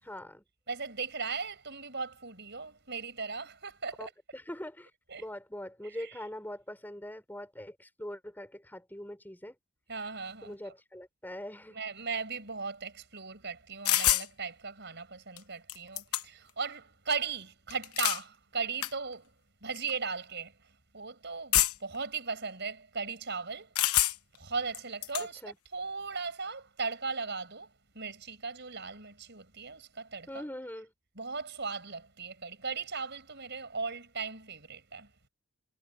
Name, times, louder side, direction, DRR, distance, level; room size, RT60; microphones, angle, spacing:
voice 1, 0.0-0.4 4.0-4.9 5.2-9.5 10.4-11.8 25.2-25.5 30.3-30.9, left 1 dB, 10° left, 4.5 m, -42 dB
voice 2, 0.7-4.1 5.1-5.2 5.8-6.1 9.9-10.7 11.7-19.3 19.6-20.5 20.9-23.7 24.4-27.7 27.9-30.4 31.2-35.1, right 5 dB, 50° right, 5.4 m, -37 dB
sound 1, 13.9-14.3 15.4-15.5 15.7-16.5 17.7-18.2 18.8-18.9 19.8-19.9 21.5-22.0 23.8-24.4 24.7-25.3, left 14 dB, 80° left, 1.1 m, -27 dB
head